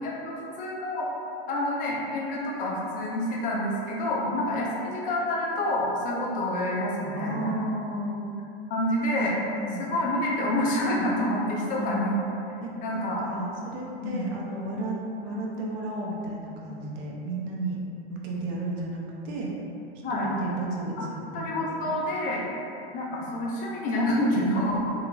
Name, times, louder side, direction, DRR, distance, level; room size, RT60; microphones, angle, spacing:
voice 1, 0.0-1.1 1.5-7.6 8.7-9.3 9.8-12.1 12.8-13.2 14.0-14.3 20.0-20.3 21.0-21.1 21.3-22.5 22.9-24.8, left 1 dB, 25° left, -4 dB, 0.4 m, -28 dB
voice 2, 7.1-8.2 9.3-9.9 11.6-12.3 12.6-15.0 15.2-17.8 18.1-19.5 20.1-21.9, right 1 dB, 35° right, -2 dB, 0.5 m, -33 dB
2.9 x 2.4 x 2.3 m, 2.7 s
hypercardioid pair, 125°, 32 cm